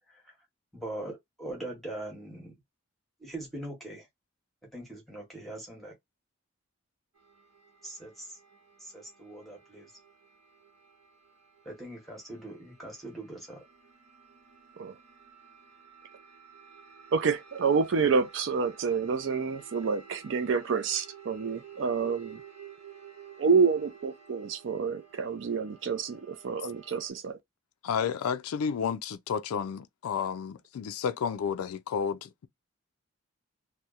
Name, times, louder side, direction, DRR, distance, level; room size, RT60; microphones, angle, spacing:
voice 1, 0.7-2.5 3.2-4.1 4.7-5.9 7.8-8.4 8.8-9.9 11.6-13.6, right 1 dB, ahead, 0.8 m, -41 dB
sound 1, 7.1-27.1, right 7 dB, 90° right, 1.0 m, -53 dB
voice 2, 17.1-22.4 23.4-27.4, right 5 dB, 55° right, 0.4 m, -28 dB
voice 3, 27.8-32.5, left 7 dB, 85° left, 0.3 m, -31 dB
2.8 x 2.1 x 2.3 m
head